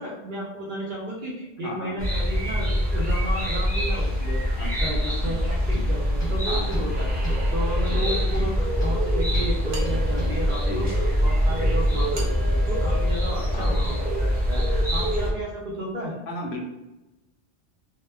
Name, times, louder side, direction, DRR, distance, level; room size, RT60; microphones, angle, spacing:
voice 1, 0.0-4.4 4.8-16.2, right 1 dB, 55° right, -3 dB, 0.6 m, -33 dB
voice 2, 1.6-2.0 4.6-4.9 6.5-6.8 10.6-10.9 13.5-13.9 16.3-16.7, left 2 dB, 70° left, 0 dB, 0.8 m, -34 dB
sound 1, 2.0-15.3, equal, 10° right, 0.7 m, -24 dB
sound 2, 5.2-5.4 5.7-6.4 6.7-6.9 7.2-7.5 7.9-9.0 9.3-9.5 9.8-10.3, right 3 dB, 30° left, 0.9 m, -36 dB
sound 3, 9.7-10.8 12.1-14.0, left 1 dB, 75° right, 0.9 m, -41 dB
2.1 x 2.1 x 3.3 m, 0.99 s
omnidirectional pair, 1.2 m